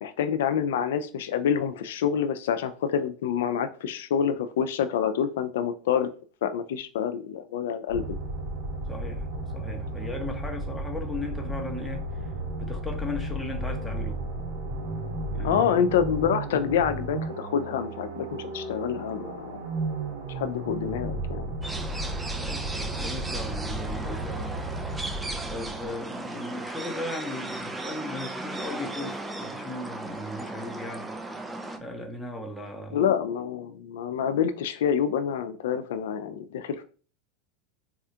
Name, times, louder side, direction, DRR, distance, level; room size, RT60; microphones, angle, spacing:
voice 1, 0.0-6.1 6.4-8.2 15.4-19.6 20.3-21.5 32.9-36.8, left 8 dB, 80° left, 0.4 m, -27 dB
sound 1, 7.9-25.9, right 2 dB, 65° right, 1.2 m, -34 dB
voice 2, 8.9-9.3 9.5-12.3 12.6-14.2 15.3-15.9 22.3-24.6 25.5-31.1 31.8-33.1, left 2 dB, 5° left, 0.8 m, -37 dB
sound 2, 21.6-31.8, right 2 dB, 10° right, 0.4 m, -36 dB
4.2 x 2.3 x 2.8 m
supercardioid pair, 115°, 0 cm